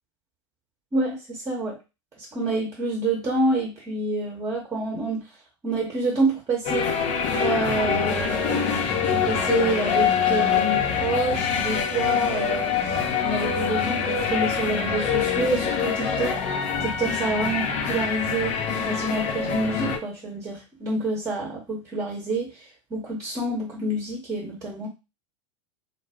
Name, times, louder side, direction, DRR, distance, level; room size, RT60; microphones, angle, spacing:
voice 1, 0.9-1.8 2.2-5.3 5.6-6.9 7.3-8.7 9.1-16.4 16.8-18.6 18.9-24.9, right 2 dB, 20° right, -1 dB, 1.0 m, -28 dB
sound 1, 6.6-20.0, left 7 dB, 45° left, 0.7 m, -25 dB
2.2 x 2.0 x 3.5 m, 0.27 s
hypercardioid pair, 90°, 16 cm